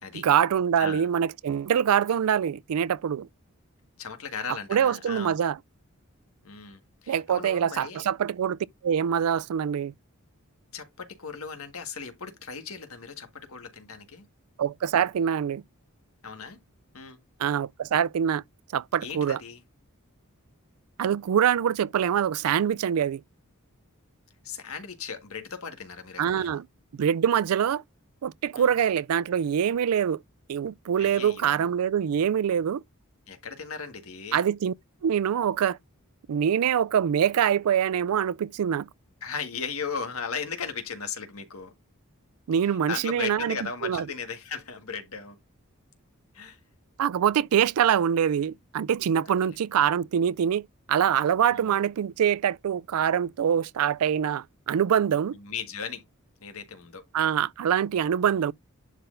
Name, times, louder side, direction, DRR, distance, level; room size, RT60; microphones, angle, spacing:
voice 1, 0.1-3.3 4.7-5.6 7.1-9.9 14.6-15.6 17.4-18.4 18.7-19.4 21.0-23.2 26.2-26.7 27.0-27.8 28.2-30.2 30.5-32.8 34.3-34.7 35.0-35.8 36.3-38.9 42.5-43.6 43.8-44.0 47.0-55.4 57.1-58.5, right 8 dB, 90° right, 0.4 m, -24 dB
voice 2, 4.0-5.3 6.4-8.1 10.7-14.3 16.2-16.6 16.9-17.2 19.0-19.6 24.4-26.6 28.5-28.7 31.0-31.7 33.3-34.4 39.2-41.7 42.8-45.4 46.3-46.6 49.3-49.6 51.5-51.7 55.3-56.0 56.4-57.0, left 5 dB, 75° left, 1.7 m, -37 dB
11.0 x 3.9 x 2.6 m
head